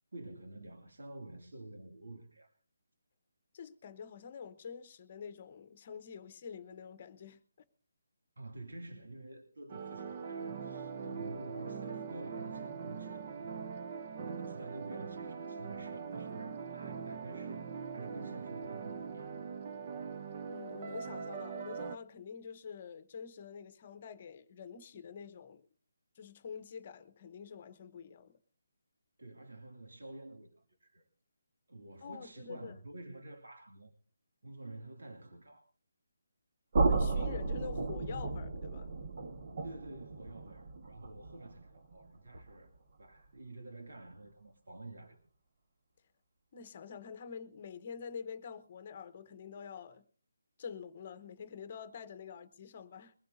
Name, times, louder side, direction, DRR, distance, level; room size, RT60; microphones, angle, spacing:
voice 1, 0.1-2.5 8.4-13.7 14.2-19.3 29.2-31.0 31.7-33.9 34.4-35.7 39.6-42.7 43.0-45.2, right 2 dB, 80° right, 2.4 m, -49 dB
voice 2, 3.5-7.4 20.5-25.7 26.2-28.4 32.0-32.8 36.8-39.0 46.5-50.1 50.6-53.1, left 6 dB, 35° left, 0.9 m, -47 dB
sound 1, 9.7-22.0, right 6 dB, 30° right, 0.6 m, -42 dB
sound 2, 36.7-42.6, right 3 dB, 50° right, 1.4 m, -34 dB
22.0 x 15.0 x 2.7 m
hypercardioid pair, 165°, 0 cm